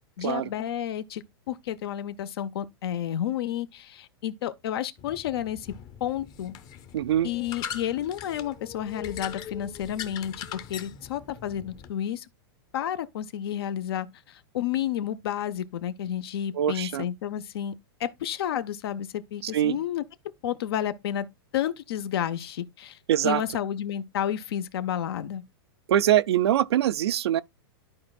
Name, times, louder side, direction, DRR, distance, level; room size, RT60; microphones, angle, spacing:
voice 1, 0.2-5.7 6.0-6.5 7.2-12.3 12.7-17.7 18.0-20.0 20.4-21.2 21.5-25.4, left 10 dB, 70° left, 0.6 m, -31 dB
sound 1, 5.0-11.9, left 8 dB, 30° left, 0.7 m, -41 dB
voice 2, 6.9-7.3 16.5-17.0 19.4-19.8 23.1-23.4 25.9-27.4, right 11 dB, 85° right, 0.4 m, -23 dB
12.5 x 4.3 x 2.3 m
hypercardioid pair, 135°, 13 cm